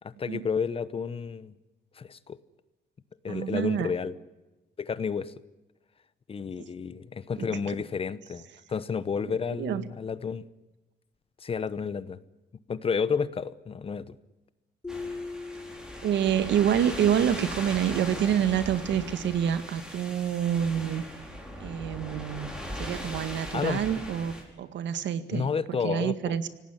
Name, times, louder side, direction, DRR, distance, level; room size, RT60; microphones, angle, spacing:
voice 1, 0.0-1.5 1.9-2.4 3.2-4.1 4.8-5.3 6.3-10.4 11.4-12.2 12.7-14.2 23.5-23.8 25.3-26.4, left 6 dB, 30° left, 16 dB, 1.0 m, -31 dB
voice 2, 3.3-3.9 6.6-6.7 7.4-7.6 9.3-9.8 16.0-21.1 21.6-26.5, right 9 dB, 75° right, 12 dB, 1.9 m, -27 dB
sound 1, 14.8-16.5, left 3 dB, 15° left, 3.6 m, -39 dB
sound 2, 14.9-24.4, equal, 5° right, 5.5 m, -39 dB
26.0 x 18.0 x 9.9 m, 1.1 s
cardioid pair, 165°, 19 cm